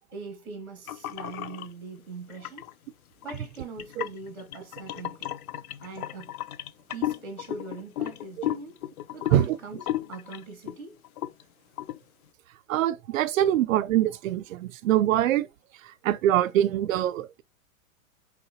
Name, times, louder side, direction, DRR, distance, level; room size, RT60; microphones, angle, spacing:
voice 1, 0.1-2.7 3.2-5.3 5.8-6.3 6.9-8.8 9.1-11.0, right 4 dB, 5° left, 0.4 m, -41 dB
sound 1, 0.9-1.7 2.3-2.7 3.2-10.8 11.0-11.4 11.8-12.0, left 13 dB, 80° left, 0.5 m, -34 dB
voice 2, 12.7-15.5 16.0-17.4, right 12 dB, 70° right, 0.6 m, -23 dB
4.8 x 3.5 x 2.9 m
supercardioid pair, 160°, 42 cm